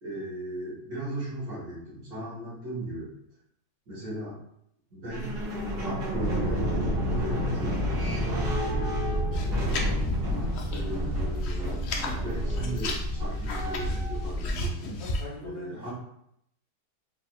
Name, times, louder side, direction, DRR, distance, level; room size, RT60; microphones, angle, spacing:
voice 1, 0.0-3.1 3.9-4.4 4.9-5.4 5.8-9.6 10.2-11.8 12.2-15.0 15.4-15.9, right 1 dB, 65° right, -7 dB, 2.2 m, -37 dB
sound 1, 5.1-14.2, left 1 dB, 85° right, 2.0 m, -33 dB
sound 2, 6.1-14.5, right 1 dB, 40° right, 1.1 m, -30 dB
sound 3, 9.3-10.9 11.2-12.1 12.5-15.2, left 2 dB, 80° left, 0.5 m, -34 dB
voice 2, 15.0-15.9, left 1 dB, 45° left, -6 dB, 1.4 m, -43 dB
4.6 x 3.2 x 2.3 m, 0.74 s
omnidirectional pair, 1.8 m